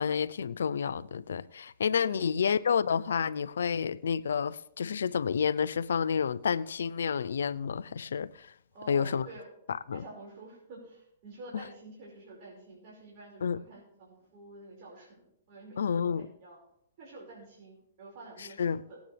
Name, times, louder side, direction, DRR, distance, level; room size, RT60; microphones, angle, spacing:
voice 1, 0.0-8.5 8.9-9.3 9.9-10.0 13.4-13.6 15.8-16.3 18.6-18.8, left 7 dB, 85° left, 0.5 m, -29 dB
voice 2, 2.1-2.5 8.7-9.5 9.9-16.6 17.0-19.0, right 2 dB, 55° right, 5.2 m, -49 dB
18.5 x 9.2 x 3.4 m
hypercardioid pair, 130°, 0 cm